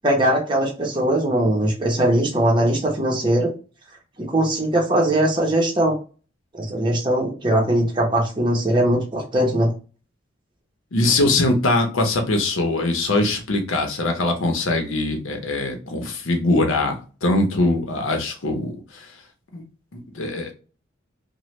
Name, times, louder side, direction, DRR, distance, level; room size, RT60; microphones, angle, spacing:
voice 1, 0.0-3.5 4.2-5.9 6.6-9.7, right 1 dB, 25° right, -1 dB, 0.7 m, -20 dB
voice 2, 10.9-19.1 19.5-19.6 19.9-20.5, left 2 dB, 85° left, 4 dB, 0.8 m, -22 dB
3.1 x 2.1 x 3.1 m, 0.35 s
head